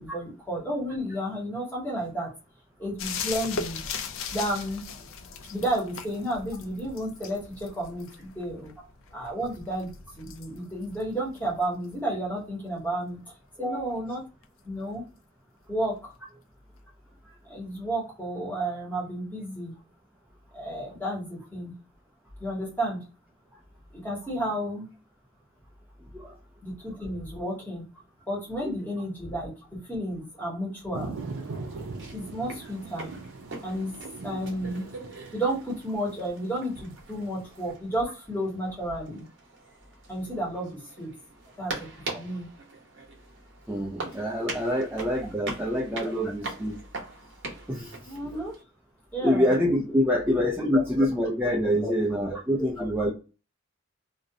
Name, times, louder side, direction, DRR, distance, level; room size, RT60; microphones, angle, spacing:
voice 1, 0.0-2.3 2.8-3.8 4.3-4.8 5.5-8.7 9.1-13.2 13.6-14.2 14.6-15.0 15.7-16.4 17.5-19.7 20.5-21.7 22.4-23.0 23.9-24.9 26.6-27.8 28.3-29.5 29.8-31.1 32.1-33.1 33.6-34.0 34.2-34.9 35.3-39.2 40.1-41.1 41.6-42.5 46.0-46.1 48.0-48.5 49.1-49.5 50.1-50.2 50.7-51.0 51.8-51.9 52.8-52.9, right 1 dB, 10° left, -3 dB, 0.9 m, -32 dB
sound 1, 3.0-12.4 14.4-14.5, left 5 dB, 70° left, 0.4 m, -39 dB
voice 2, 13.6-14.0 26.1-26.4 28.6-28.7 43.7-46.8 47.7-48.0 49.2-53.1, equal, 5° right, -3 dB, 0.4 m, -26 dB
sound 2, 30.9-37.6, right 3 dB, 80° right, 0.5 m, -40 dB
sound 3, 31.2-48.6, right 3 dB, 60° right, 0.8 m, -42 dB
2.4 x 2.0 x 2.7 m, 0.32 s
head